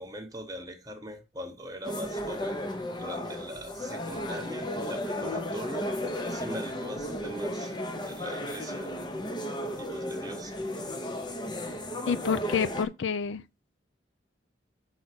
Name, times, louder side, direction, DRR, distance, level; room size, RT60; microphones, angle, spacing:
voice 1, 0.0-2.6 3.0-5.9 6.3-7.7 8.0-8.9 9.8-10.5, equal, 20° right, 1.1 m, -41 dB
sound 1, 1.8-12.9, left 1 dB, 25° left, 0.8 m, -34 dB
voice 2, 12.1-13.4, left 6 dB, 85° left, 0.4 m, -28 dB
5.7 x 3.9 x 6.0 m
head